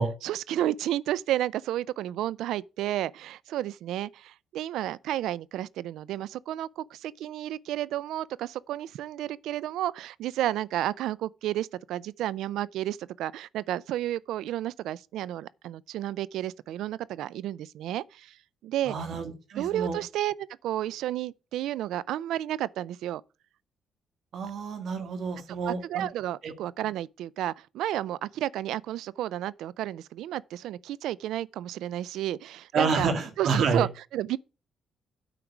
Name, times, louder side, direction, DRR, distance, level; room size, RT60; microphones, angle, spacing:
voice 1, 0.2-18.4 18.6-19.0 19.6-20.3 20.6-23.2 25.5-33.1 33.4-34.4, right 13 dB, 85° right, 0.4 m, -32 dB
voice 2, 18.9-20.0 24.3-26.1 26.4-26.5 32.7-33.9, right 4 dB, 65° right, 2.1 m, -28 dB
8.9 x 4.6 x 7.2 m
cardioid pair, 90°, 0 cm